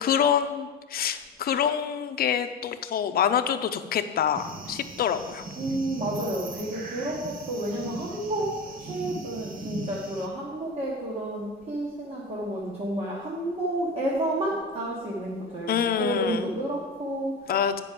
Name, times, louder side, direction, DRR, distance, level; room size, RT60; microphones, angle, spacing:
voice 1, 0.0-5.4 15.7-16.5 17.5-17.8, left 8 dB, 55° left, 9 dB, 0.6 m, -26 dB
sound 1, 4.3-10.3, right 3 dB, 50° right, 1.0 m, -39 dB
voice 2, 5.6-17.5, right 1 dB, 35° right, -5 dB, 1.5 m, -30 dB
9.5 x 5.3 x 7.6 m, 1.4 s
wide cardioid pair, 165°, 18 cm